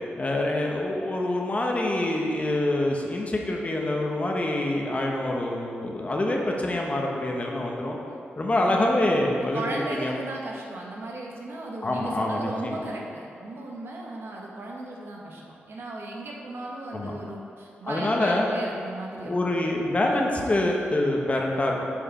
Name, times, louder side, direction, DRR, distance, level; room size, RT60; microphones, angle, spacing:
voice 1, 0.2-8.0 8.4-10.2 11.8-12.8 16.9-17.1 17.8-18.5 19.2-21.8, left 1 dB, 35° left, 0 dB, 1.1 m, -26 dB
voice 2, 9.5-19.3, right 2 dB, 70° right, -2 dB, 1.3 m, -36 dB
7.2 x 4.9 x 5.3 m, 2.6 s
cardioid pair, 85°, 4 cm